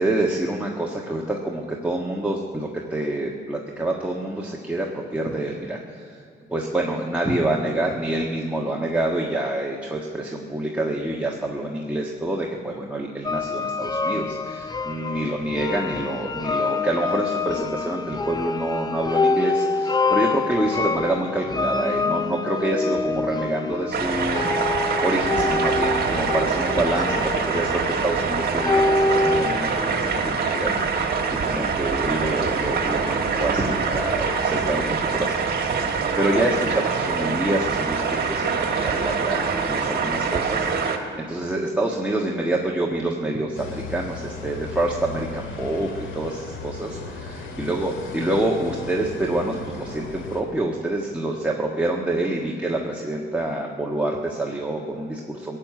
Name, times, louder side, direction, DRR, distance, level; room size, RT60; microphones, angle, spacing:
voice 1, 0.0-6.2 6.5-41.0 41.3-55.6, right 1 dB, 5° right, -3 dB, 1.5 m, -27 dB
sound 1, 13.2-29.5, left 3 dB, 20° left, 0.6 m, -26 dB
sound 2, 23.9-41.0, right 5 dB, 50° right, 1.8 m, -24 dB
sound 3, 43.5-50.4, left 4 dB, 80° left, 2.0 m, -36 dB
17.5 x 7.5 x 9.3 m, 2.4 s
cardioid pair, 90°, 20 cm